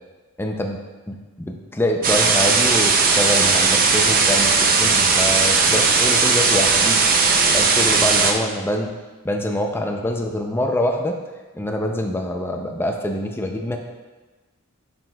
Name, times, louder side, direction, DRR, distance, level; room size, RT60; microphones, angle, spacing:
voice 1, 0.4-0.8 1.1-7.0 7.4-8.9 9.2-11.1 11.5-13.8, left 1 dB, 10° left, 3 dB, 0.5 m, -25 dB
sound 1, 2.0-8.3, right 4 dB, 40° right, 0.6 m, -17 dB
8.9 x 6.1 x 2.3 m, 1.2 s
head